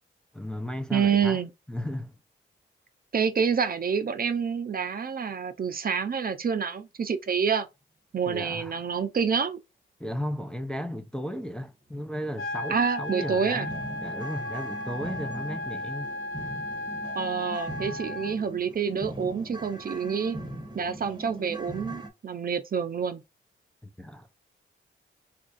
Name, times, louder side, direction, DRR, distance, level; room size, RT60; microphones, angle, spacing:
voice 1, 0.3-1.4 1.7-2.2 8.3-8.8 10.0-13.7 14.0-16.1 23.8-24.4, equal, 5° left, 0.5 m, -35 dB
voice 2, 0.9-1.5 3.1-7.7 8.1-9.6 12.7-13.7 17.2-20.4 20.7-23.2, right 6 dB, 45° right, 0.6 m, -27 dB
sound 1, 12.4-18.4, left 1 dB, 90° left, 0.6 m, -35 dB
sound 2, 12.6-12.7 13.0-22.1, right 1 dB, 20° right, 1.0 m, -40 dB
4.2 x 2.4 x 2.4 m
cardioid pair, 65°, 21 cm